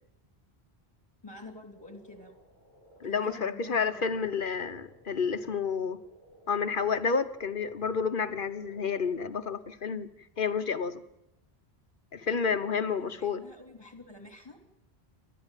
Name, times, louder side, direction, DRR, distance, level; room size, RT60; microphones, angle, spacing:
voice 1, 1.2-2.3 3.0-4.2 13.0-14.6, left 2 dB, 25° left, 5 dB, 3.1 m, -48 dB
sound 1, 1.7-9.7, right 1 dB, 85° right, 8.2 m, -57 dB
voice 2, 3.0-6.0 6.5-10.1 10.4-11.0 12.1-13.4, left 5 dB, 55° left, 11 dB, 1.1 m, -30 dB
29.0 x 13.0 x 9.1 m, 0.88 s
omnidirectional pair, 1.1 m